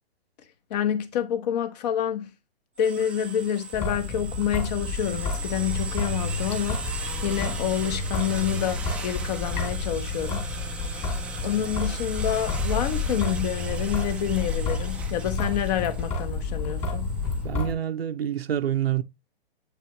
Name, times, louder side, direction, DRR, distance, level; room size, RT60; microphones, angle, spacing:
voice 1, 0.7-2.3 2.8-10.5 11.4-17.1, left 9 dB, 40° left, 1.2 m, -28 dB
sound 1, 2.8-17.4, right 4 dB, 5° right, 0.4 m, -38 dB
Traffic noise roadway noise / Drip / Trickle dribble, 3.7-17.7, left 3 dB, 20° left, 2.4 m, -30 dB
voice 2, 17.4-19.0, right 10 dB, 75° right, 0.6 m, -27 dB
8.0 x 4.9 x 3.1 m
figure-of-eight pair, 120°, 31 cm